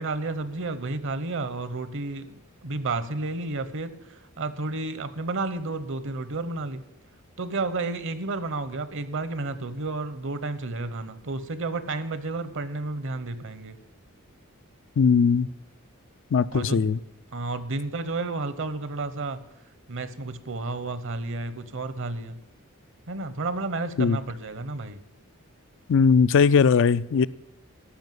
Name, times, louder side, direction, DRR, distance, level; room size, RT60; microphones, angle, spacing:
voice 1, 0.0-6.8 7.4-13.8 16.5-16.9 17.3-19.4 19.9-22.4 23.1-25.0, right 3 dB, 60° right, 0.9 m, -31 dB
voice 2, 15.0-15.5 16.3-17.0 24.0-24.2 25.9-27.3, left 5 dB, 60° left, 0.4 m, -19 dB
13.0 x 5.6 x 9.3 m
head